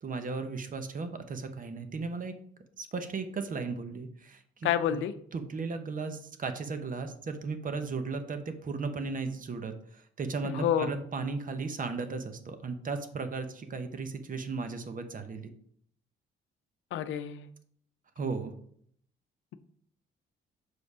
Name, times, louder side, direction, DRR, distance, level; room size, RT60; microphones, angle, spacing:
voice 1, 0.0-2.3 2.8-5.0 5.3-15.5 18.2-18.5, right 4 dB, 45° right, 8 dB, 1.0 m, -36 dB
voice 2, 4.6-5.1 10.4-10.9 16.9-17.5, left 10 dB, 75° left, 11 dB, 0.6 m, -28 dB
6.4 x 5.2 x 4.9 m, 0.64 s
cardioid pair, 90°, 20 cm